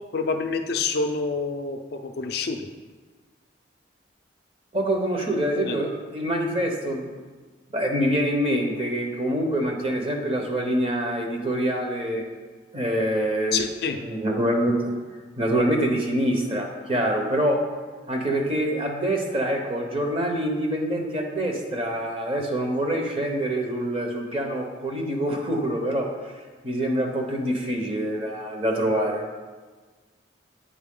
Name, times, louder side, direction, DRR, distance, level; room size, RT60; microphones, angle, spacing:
voice 1, 0.1-2.7 5.6-5.8 13.5-14.0, left 4 dB, 55° left, 5 dB, 0.4 m, -27 dB
voice 2, 4.7-7.1 7.7-12.3 12.7-14.9 15.4-17.6 18.1-26.3 26.6-29.4, right 1 dB, 30° right, 1 dB, 0.8 m, -25 dB
8.7 x 4.5 x 3.7 m, 1.4 s
head